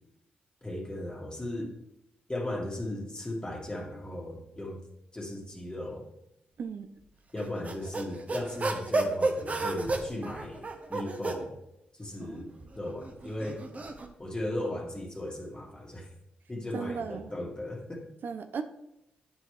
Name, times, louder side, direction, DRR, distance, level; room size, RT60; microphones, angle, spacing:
voice 1, 0.6-1.7 2.3-4.8 5.1-6.0 7.3-11.6 11.9-13.6 14.2-16.1 16.5-18.0, left 1 dB, 20° left, 0 dB, 2.1 m, -37 dB
voice 2, 6.6-6.9 12.2-12.4 16.7-17.3 18.2-18.6, right 5 dB, 60° right, 8 dB, 0.5 m, -36 dB
sound 1, 7.4-11.4 12.4-14.1, right 3 dB, 40° right, 1.0 m, -32 dB
8.8 x 5.4 x 3.3 m, 0.83 s
supercardioid pair, 50°, 4 cm